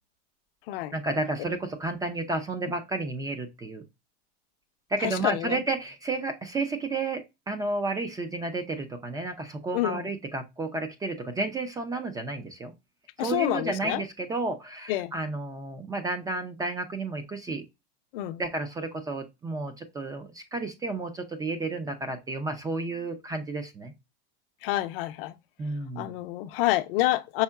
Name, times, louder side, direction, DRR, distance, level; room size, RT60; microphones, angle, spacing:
voice 1, 0.9-3.8 4.9-12.7 13.2-17.6 18.4-23.9 25.6-26.2, right 2 dB, 10° right, 0.4 m, -32 dB
voice 2, 5.0-5.6 9.7-10.1 13.2-14.0 14.9-15.1 18.1-18.4 24.6-25.3 26.0-27.4, left 16 dB, 65° left, 0.5 m, -28 dB
5.5 x 3.6 x 2.2 m
supercardioid pair, 135°, 30 cm